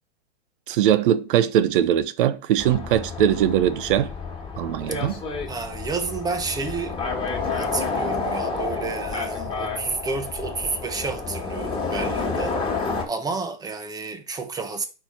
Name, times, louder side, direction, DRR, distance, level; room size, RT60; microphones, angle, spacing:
voice 1, 0.7-4.1 4.6-5.2, right 10 dB, 50° right, 0.6 m, -21 dB
sound 1, 2.6-13.0, left 4 dB, 15° left, 1.5 m, -29 dB
voice 2, 5.5-7.0 7.5-12.6 13.1-14.8, right 4 dB, 10° right, 0.6 m, -30 dB
4.6 x 4.3 x 5.5 m
hypercardioid pair, 120°, 34 cm